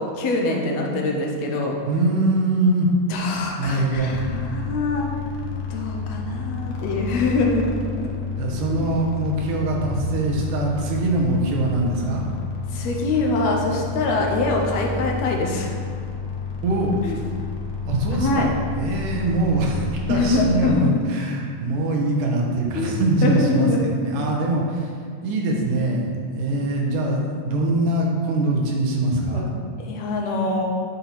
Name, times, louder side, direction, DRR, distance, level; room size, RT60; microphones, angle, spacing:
voice 1, 0.0-1.8 3.1-5.1 5.7-7.7 8.7-8.9 12.7-15.8 17.0-17.2 18.1-18.5 20.1-20.9 22.7-23.8 24.1-24.4 29.3-29.5 29.8-30.6, left 3 dB, 70° left, 0 dB, 1.7 m, -24 dB
voice 2, 1.8-2.9 3.6-4.1 8.4-12.2 16.6-17.0 17.8-18.5 18.8-24.9 25.2-26.1 26.3-29.5, right 2 dB, 85° right, -1 dB, 2.6 m, -23 dB
sound 1, 3.9-20.7, left 5 dB, 90° left, 1.1 m, -30 dB
9.7 x 4.4 x 4.2 m, 2.1 s
omnidirectional pair, 3.7 m